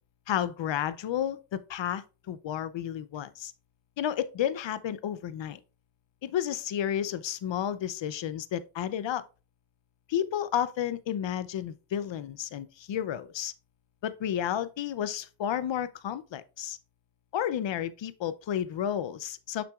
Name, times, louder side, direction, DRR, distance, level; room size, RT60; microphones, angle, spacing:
voice 1, 0.3-3.5 4.0-5.6 6.2-9.2 10.1-13.5 14.0-16.8 17.3-19.6, left 10 dB, 90° left, 0.6 m, -31 dB
7.0 x 5.9 x 2.3 m
cardioid pair, 60°, 43 cm